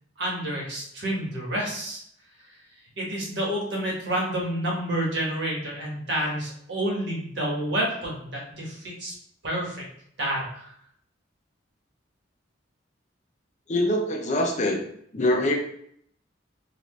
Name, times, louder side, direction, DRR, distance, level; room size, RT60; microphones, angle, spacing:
voice 1, 0.2-2.0 3.0-9.1 9.4-9.8 10.2-10.7, right 1 dB, 65° right, -3 dB, 1.3 m, -29 dB
voice 2, 13.7-14.8 15.1-15.6, left 1 dB, 40° left, 2 dB, 0.6 m, -24 dB
3.9 x 2.5 x 3.1 m, 0.68 s
head